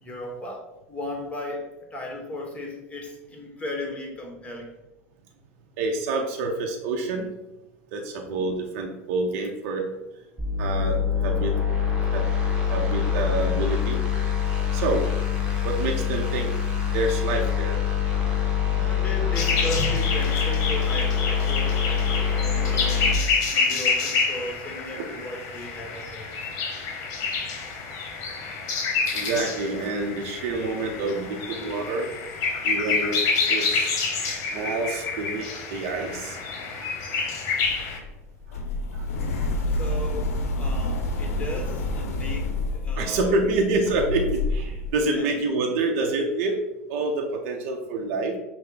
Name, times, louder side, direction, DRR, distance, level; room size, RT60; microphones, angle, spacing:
voice 1, 0.0-4.7 18.6-26.5 32.5-32.7 33.1-33.2 39.1-43.6 45.1-45.3, left 1 dB, 15° left, 1 dB, 1.2 m, -36 dB
voice 2, 5.8-7.3 7.9-9.9 10.6-11.6 12.1-12.2 12.7-14.0 14.7-15.0 15.6-16.5 16.9-17.8 25.0-25.1 29.1-32.1 32.6-33.2 33.5-34.0 34.5-36.4 36.8-36.9 43.0-46.6 46.9-48.3, right 3 dB, 60° right, 2 dB, 0.6 m, -27 dB
sound 1, 10.4-23.1, left 7 dB, 10° right, 1.3 m, -25 dB
sound 2, 19.3-38.0, left 4 dB, 50° left, 0.9 m, -28 dB
sound 3, 37.6-44.9, left 2 dB, 75° left, 0.6 m, -28 dB
5.4 x 2.1 x 3.8 m, 0.95 s
hypercardioid pair, 90°, 8 cm